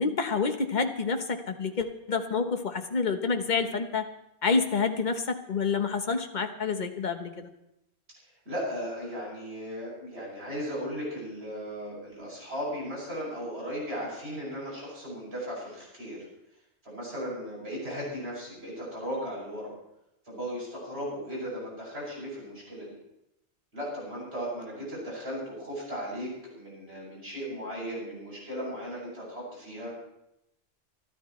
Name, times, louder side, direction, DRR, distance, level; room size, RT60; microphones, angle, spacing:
voice 1, 0.0-4.1 4.4-7.5, left 4 dB, 45° left, 6 dB, 1.3 m, -28 dB
voice 2, 8.4-16.2 16.8-19.7 20.2-22.9 23.7-29.9, equal, 75° right, -4 dB, 8.2 m, -36 dB
28.0 x 12.0 x 3.2 m, 0.84 s
omnidirectional pair, 1.1 m